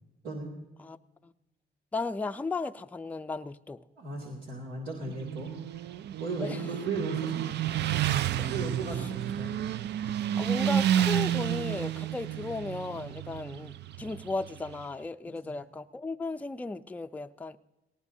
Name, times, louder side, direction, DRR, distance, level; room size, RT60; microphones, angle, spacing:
voice 1, 1.9-3.8 6.4-6.6 8.4-8.5 10.4-17.6, left 3 dB, 10° left, 0.4 m, -35 dB
voice 2, 4.0-5.8 6.2-7.5 8.5-9.5 15.5-15.6, right 3 dB, 90° right, 2.5 m, -36 dB
Motorcycle, 5.1-14.8, right 11 dB, 60° right, 0.4 m, -30 dB
18.5 x 17.5 x 2.7 m
cardioid pair, 90°, 20 cm